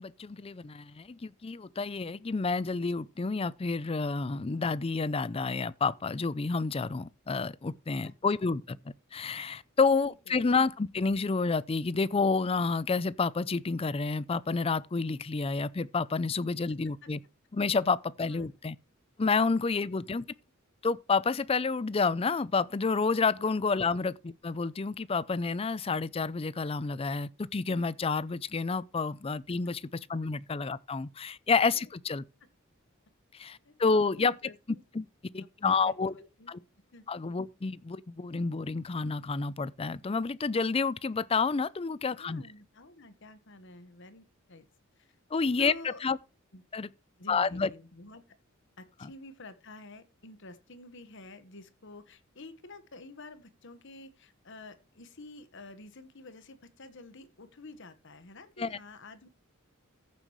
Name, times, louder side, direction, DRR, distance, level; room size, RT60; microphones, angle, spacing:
voice 1, 0.0-8.8 9.1-17.2 17.5-18.8 19.2-20.3 20.8-32.2 33.3-34.4 34.9-35.1 35.3-36.1 36.5-36.6 37.1-42.4 45.3-46.2 46.7-46.9 47.3-47.7 49.0-49.1 58.6-58.8, left 4 dB, 30° left, 0.5 m, -29 dB
voice 2, 10.0-10.5 17.0-17.1 18.3-18.5 19.8-20.2 31.7-31.8 33.6-34.8 35.6-36.5 36.9-37.1 42.2-44.7 45.0-45.1 45.6-46.0 46.5-46.6 47.2-48.2 48.8-59.3, left 2 dB, 60° left, 1.3 m, -50 dB
14.5 x 7.4 x 3.1 m
head